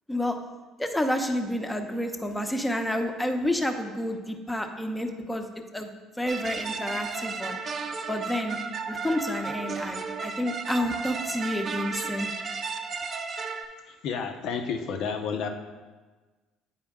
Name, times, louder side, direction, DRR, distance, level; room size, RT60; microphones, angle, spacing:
voice 1, 0.8-5.5 5.7-5.9 6.2-7.6 8.1-8.6 8.9-12.3, left 1 dB, 10° left, 5 dB, 0.8 m, -29 dB
sound 1, 6.3-13.6, right 5 dB, 45° right, 0.6 m, -34 dB
voice 2, 14.0-15.5, left 6 dB, 70° left, 5 dB, 0.7 m, -30 dB
9.0 x 4.3 x 3.6 m, 1.3 s
supercardioid pair, 80°, 0 cm